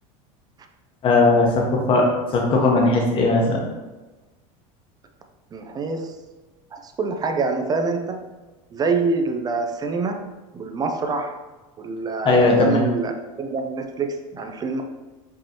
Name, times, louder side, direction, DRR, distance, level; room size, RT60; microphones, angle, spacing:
voice 1, 1.0-2.1 2.3-3.6 12.2-12.8, left 3 dB, 30° left, 0 dB, 0.9 m, -18 dB
voice 2, 5.5-6.1 6.7-8.2 8.7-10.2 10.5-11.4 11.8-13.1 13.4-14.8, right 4 dB, 25° right, 5 dB, 0.4 m, -25 dB
5.2 x 3.0 x 2.8 m, 1.2 s
supercardioid pair, 125°, 17 cm